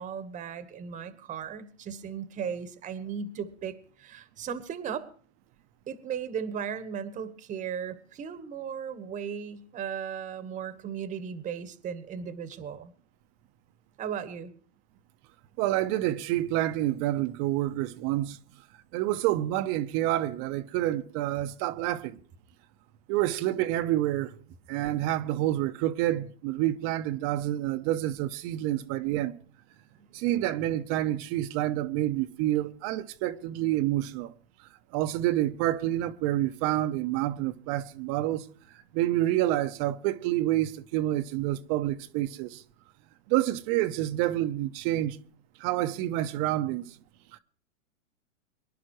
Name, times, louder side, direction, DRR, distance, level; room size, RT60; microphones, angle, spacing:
voice 1, 0.0-5.1 5.9-12.9 14.0-14.5 29.9-30.1, right 7 dB, 20° right, 1.2 m, -36 dB
voice 2, 15.6-18.4 18.9-22.2 23.1-24.3 24.7-29.4 30.1-34.3 34.6-38.5 38.7-42.6 43.3-45.2 45.6-47.0 47.3-47.4, right 14 dB, 35° right, 0.8 m, -28 dB
24.0 x 11.5 x 3.1 m
hypercardioid pair, 130°, 39 cm